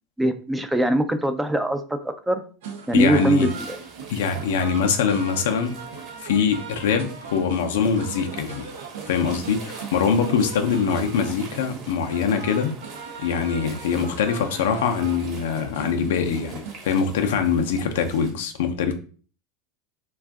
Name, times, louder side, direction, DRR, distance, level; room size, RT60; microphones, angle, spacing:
voice 1, 0.2-2.4 2.9-3.8, right 1 dB, 10° right, 8 dB, 0.4 m, -22 dB
sound 1, 2.6-16.7, right 5 dB, 75° right, 0.5 m, -39 dB
voice 2, 2.9-3.5 4.1-5.7 6.2-8.7 9.1-12.7 13.2-18.9, left 6 dB, 75° left, 6 dB, 0.5 m, -23 dB
sound 2, 3.5-18.3, right 3 dB, 50° right, 1.0 m, -45 dB
2.5 x 2.3 x 3.4 m, 0.40 s
hypercardioid pair, 90°, 0 cm